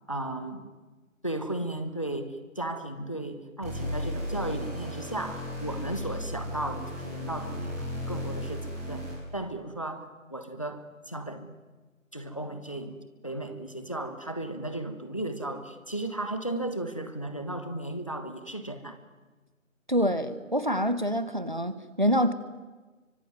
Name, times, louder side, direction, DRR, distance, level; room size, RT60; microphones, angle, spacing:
voice 1, 0.1-0.7 1.2-11.5 12.1-13.0 13.2-19.0, right 1 dB, 25° left, 9 dB, 1.3 m, -35 dB
sound 1, 3.6-9.4, left 1 dB, 10° right, 5.0 m, -35 dB
voice 2, 19.9-22.3, equal, 35° right, 13 dB, 1.3 m, -26 dB
25.5 x 24.5 x 9.4 m, 1.3 s
figure-of-eight pair, 170°, 41 cm